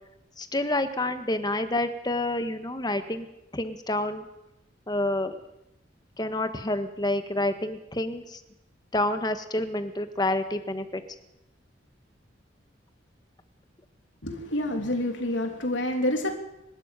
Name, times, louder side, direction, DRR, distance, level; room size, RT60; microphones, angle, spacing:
voice 1, 0.4-3.3 3.5-4.2 4.9-5.4 6.2-8.4 8.9-11.0, left 1 dB, 20° left, 9 dB, 1.6 m, -28 dB
voice 2, 14.2-16.4, left 1 dB, 90° left, 3 dB, 3.1 m, -28 dB
24.5 x 12.5 x 9.1 m, 0.88 s
head